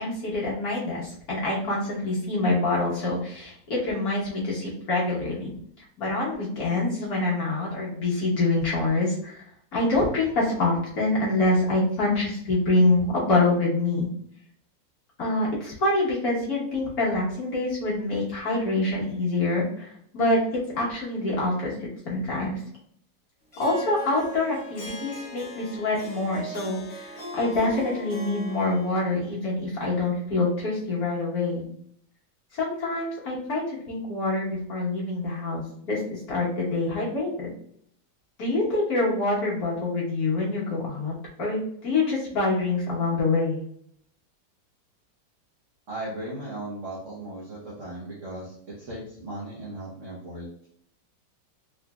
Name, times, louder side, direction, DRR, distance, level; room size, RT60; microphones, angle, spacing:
voice 1, 0.0-5.5 6.0-9.4 9.7-14.1 15.2-20.4 20.7-21.7 22.0-22.6 23.6-31.7 32.5-35.6 35.9-37.5 38.4-41.1 41.4-43.6, left 2 dB, 55° left, -6 dB, 1.5 m, -26 dB
Harp, 23.5-29.3, right 1 dB, 25° left, 0.9 m, -39 dB
voice 2, 45.9-50.7, right 1 dB, 50° right, -6 dB, 1.1 m, -37 dB
3.9 x 3.1 x 2.2 m, 0.67 s
omnidirectional pair, 2.0 m